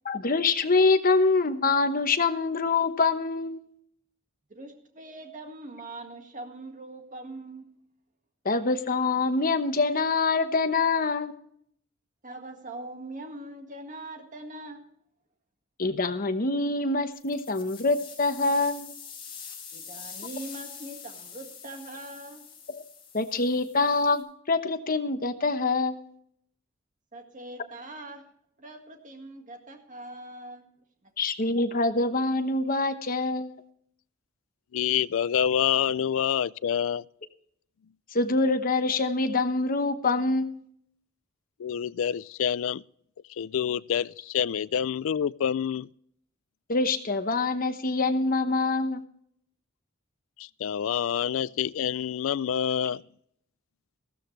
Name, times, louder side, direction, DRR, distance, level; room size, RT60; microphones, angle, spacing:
voice 1, 0.0-3.6 8.4-11.3 15.8-18.9 22.7-22.8 23.1-26.0 31.2-33.5 38.1-40.6 46.7-49.0, left 3 dB, 45° left, 1.1 m, -25 dB
voice 2, 4.5-7.7 12.2-14.8 19.7-22.4 27.1-28.3 28.6-30.7 31.0-31.1, right 2 dB, 40° right, 1.8 m, -42 dB
sound 1, 17.1-24.2, left 6 dB, 25° left, 4.6 m, -45 dB
voice 3, 34.7-37.0 41.6-42.8 43.4-45.9 50.6-53.0, left 8 dB, 75° left, 0.4 m, -27 dB
15.5 x 13.0 x 3.2 m
head